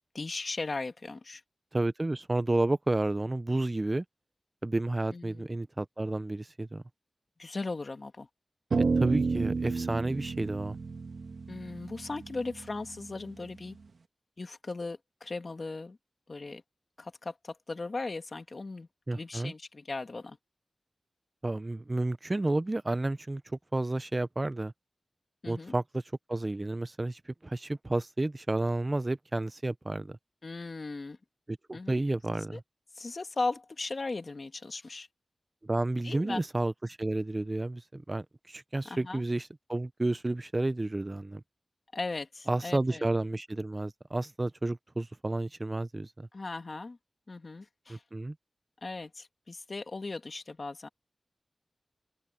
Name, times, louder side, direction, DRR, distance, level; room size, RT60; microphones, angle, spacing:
voice 1, 0.1-1.4 5.1-5.4 7.4-8.3 11.5-13.8 14.4-16.0 16.3-16.6 17.0-20.4 25.4-25.7 30.4-31.2 31.7-32.0 32.4-32.6 32.9-35.1 36.0-36.4 38.9-39.2 41.9-43.1 46.3-47.0 47.3-48.0 48.8-50.9, left 3 dB, 55° left, 1.7 m, -37 dB
voice 2, 1.7-4.0 4.6-6.8 9.0-10.8 19.1-19.5 21.4-23.4 23.7-24.7 25.5-26.0 26.3-30.2 31.7-32.6 35.6-41.4 42.5-46.3 47.9-48.3, right 2 dB, 30° right, 0.7 m, -31 dB
sound 1, 8.7-13.2, right 4 dB, 80° right, 2.0 m, -31 dB
open air
wide cardioid pair, 95°, 0 cm